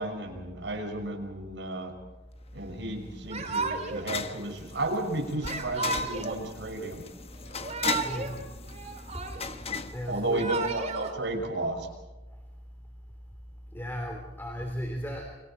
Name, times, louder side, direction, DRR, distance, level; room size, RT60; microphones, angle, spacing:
voice 1, 0.0-1.9 2.5-7.0 10.1-11.9, right 2 dB, 70° right, 3 dB, 6.2 m, -33 dB
sound 1, 2.5-10.8, left 5 dB, 35° left, 1.1 m, -38 dB
Yell / Crying sobbing, 3.3-4.1 5.4-6.4 7.5-8.4 8.7-9.6 10.2-11.1, right 4 dB, 40° right, 2.9 m, -33 dB
voice 2, 8.0-8.5 9.1-9.2 9.9-10.5 12.3-12.4 13.7-15.4, equal, 10° left, 3 dB, 3.0 m, -36 dB
29.5 x 25.0 x 4.5 m, 1.1 s
head